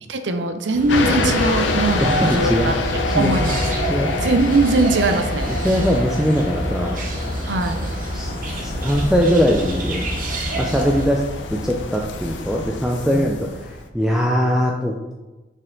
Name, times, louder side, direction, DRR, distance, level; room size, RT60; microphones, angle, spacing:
voice 1, 0.1-3.6 4.2-5.5 7.5-7.9 13.1-13.3, right 2 dB, 75° right, 8 dB, 0.6 m, -21 dB
sound 1, 0.7-11.1, right 1 dB, 45° right, 1.0 m, -28 dB
sound 2, 0.9-13.9, left 3 dB, 80° left, 0.6 m, -26 dB
voice 2, 2.0-2.8 3.1-3.4 3.8-4.1 5.6-7.0 8.1-8.3 8.6-10.1 10.6-11.2 11.5-15.1, equal, 5° right, -1 dB, 0.4 m, -21 dB
6.2 x 4.3 x 3.8 m, 1.1 s
head